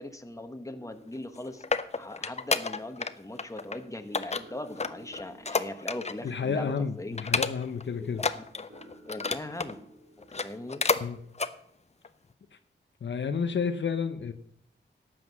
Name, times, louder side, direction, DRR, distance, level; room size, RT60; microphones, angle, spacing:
voice 1, 0.0-1.6 1.9-7.2 8.0-8.1 8.3-8.6 9.1-9.8 10.4-10.8, left 1 dB, 15° left, 8 dB, 1.3 m, -40 dB
sound 1, 0.7-11.1, right 1 dB, 60° right, 3.0 m, -57 dB
sound 2, 1.2-3.1 3.4-3.8 4.1-6.3 6.6-6.8 7.2-7.8 8.1-9.7 10.2-11.1 11.3-11.5 12.0-12.1, left 4 dB, 35° left, 0.7 m, -30 dB
voice 2, 6.2-8.2 11.0-11.2 13.0-14.3, left 6 dB, 70° left, 9 dB, 0.8 m, -30 dB
12.5 x 7.7 x 6.1 m, 0.70 s
cardioid pair, 55°, 20 cm